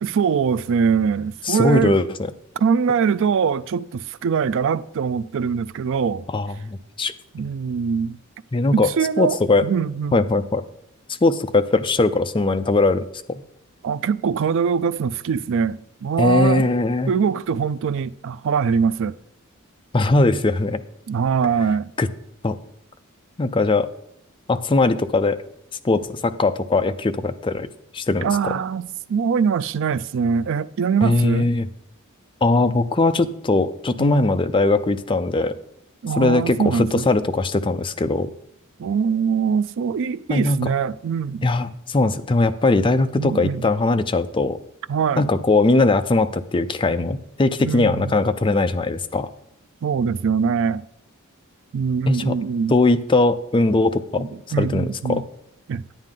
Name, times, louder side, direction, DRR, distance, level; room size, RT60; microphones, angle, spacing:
voice 1, 0.0-1.9 2.6-6.3 7.3-8.2 8.7-10.2 13.8-16.7 17.1-19.2 21.1-21.9 28.2-31.5 34.0-34.2 36.0-37.1 38.8-41.5 43.2-43.7 44.9-45.3 47.6-48.2 49.8-50.8 51.7-52.7 54.2-55.2 55.7-55.8, right 6 dB, 60° right, 0.4 m, -22 dB
voice 2, 1.5-2.1 6.3-7.1 8.5-8.9 9.2-9.6 10.1-10.6 11.1-13.4 16.2-17.1 19.9-20.8 22.0-22.1 22.4-22.6 23.4-23.9 24.5-25.4 25.8-27.7 27.9-28.3 31.0-31.7 32.4-35.6 36.2-38.3 40.3-40.6 41.4-44.6 45.2-49.3 52.1-52.3 52.7-54.3 54.6-55.2, left 2 dB, 25° left, 0.5 m, -20 dB
9.7 x 9.1 x 3.8 m
head